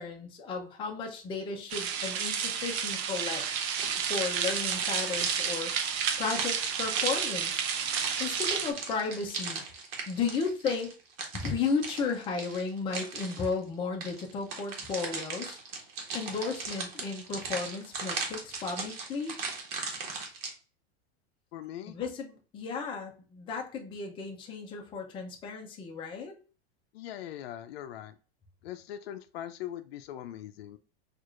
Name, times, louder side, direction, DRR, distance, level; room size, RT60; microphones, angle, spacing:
voice 1, 0.0-3.4 4.1-5.7 6.2-7.6 8.2-9.6 10.1-10.9 11.3-15.6 16.1-19.3 21.9-26.3, left 5 dB, 15° left, 1 dB, 0.5 m, -34 dB
sound 1, 1.7-8.7, right 7 dB, 35° right, 0.5 m, -31 dB
sound 2, 3.4-7.6 7.9-13.5 14.0-20.5, right 4 dB, 65° right, 1.1 m, -38 dB
voice 2, 21.5-22.0 26.9-28.2 28.6-30.8, left 11 dB, 70° left, 10 dB, 0.5 m, -41 dB
4.5 x 2.5 x 2.4 m, 0.37 s
supercardioid pair, 150°, 31 cm